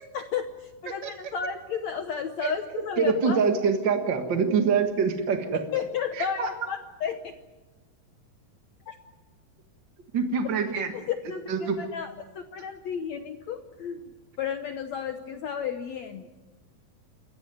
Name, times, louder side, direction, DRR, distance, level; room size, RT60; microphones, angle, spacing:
voice 1, 0.1-3.4 5.7-7.4 8.9-9.0 11.1-14.1 14.4-16.3, left 7 dB, 70° left, 7 dB, 1.7 m, -33 dB
voice 2, 3.0-5.6 6.1-6.5 10.1-10.9 11.5-11.7, right 5 dB, 50° right, 5 dB, 1.3 m, -25 dB
28.5 x 14.5 x 9.5 m, 1.3 s
omnidirectional pair, 4.5 m